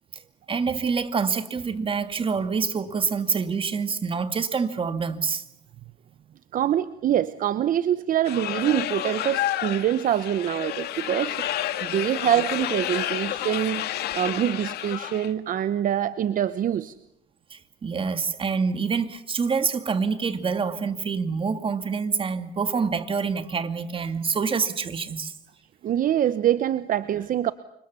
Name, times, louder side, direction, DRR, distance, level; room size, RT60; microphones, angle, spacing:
voice 1, 0.5-5.4 17.5-25.3, right 5 dB, 30° right, 2.3 m, -26 dB
voice 2, 6.5-13.9 14.1-16.9 25.8-27.5, right 10 dB, 55° right, 1.0 m, -25 dB
sound 1, 8.2-15.3, left 12 dB, 75° left, 1.9 m, -30 dB
29.5 x 25.5 x 7.1 m
cardioid pair, 110°, 17 cm